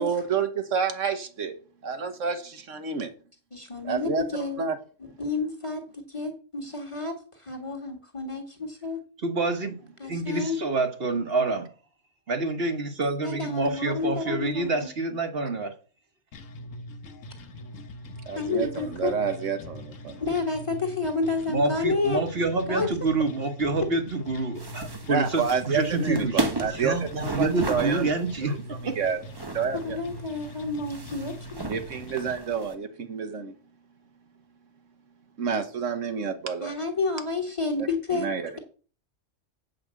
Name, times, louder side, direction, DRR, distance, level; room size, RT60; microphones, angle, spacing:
voice 1, 0.0-1.5 1.8-3.1 3.8-4.8 18.3-20.2 25.1-28.1 28.4-28.6 28.8-29.2 29.5-30.0 31.7-33.5 35.4-36.7 37.8-38.5, right 6 dB, 75° right, 1.5 m, -29 dB
voice 2, 3.5-4.6 5.2-9.0 10.0-10.6 13.2-14.7 18.4-19.1 20.2-22.3 22.7-22.9 29.8-31.6 36.6-38.3, left 3 dB, 25° left, 1.8 m, -30 dB
voice 3, 9.2-11.7 12.3-15.7 21.5-28.5 28.8-28.9, right 3 dB, 50° right, 1.5 m, -27 dB
sound 1, 16.3-32.3, left 1 dB, 90° left, 1.4 m, -42 dB
Seamstress' Studio Fabric Roll and Handling, 24.5-32.7, right 2 dB, 20° right, 1.0 m, -35 dB
8.0 x 5.2 x 7.4 m
omnidirectional pair, 1.3 m